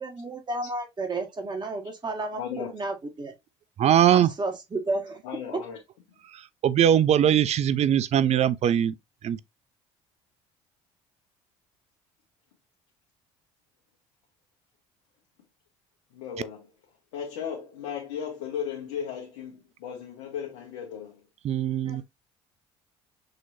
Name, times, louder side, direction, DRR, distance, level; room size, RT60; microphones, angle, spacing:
voice 1, 0.0-3.3 4.1-5.2 21.8-22.0, right 2 dB, 30° right, 1.7 m, -32 dB
voice 2, 2.4-2.7 3.8-3.9 5.2-5.8 16.1-16.7 17.1-21.2, left 8 dB, 85° left, 1.2 m, -35 dB
voice 3, 3.8-4.3 6.6-8.9 9.2-9.4 21.4-22.0, right 10 dB, 50° right, 0.5 m, -21 dB
6.4 x 3.0 x 2.6 m
supercardioid pair, 75°, 14 cm